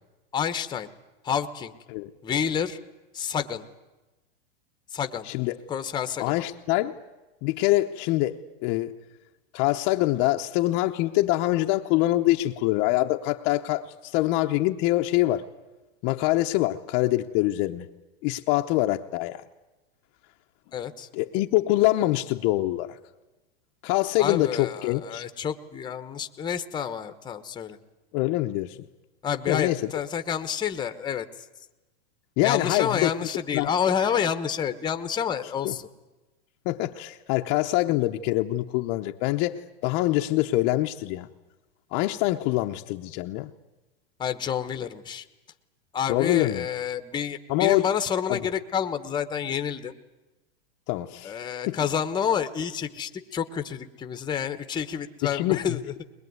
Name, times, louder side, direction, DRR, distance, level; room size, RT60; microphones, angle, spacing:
voice 1, 0.3-0.9 1.2-1.7 2.2-2.8 3.1-3.6 4.9-5.3 5.7-6.3 20.7-21.1 24.2-27.8 29.2-31.3 32.4-35.9 44.2-45.2 45.9-49.9 51.2-56.0, left 8 dB, 15° left, 10 dB, 1.1 m, -29 dB
voice 2, 5.3-5.6 6.2-7.0 7.4-8.9 9.5-15.4 16.0-17.9 18.2-19.4 21.1-23.0 23.8-25.2 28.1-28.8 29.5-29.9 32.4-33.1 33.5-33.7 35.6-35.7 36.7-41.3 41.9-43.5 46.1-46.7 47.5-47.9 48.3-48.4 50.9-51.3 51.7-51.8 55.3-55.6, left 17 dB, 40° left, 4 dB, 0.8 m, -24 dB
21.5 x 21.0 x 9.5 m, 1.1 s
supercardioid pair, 140°, 30 cm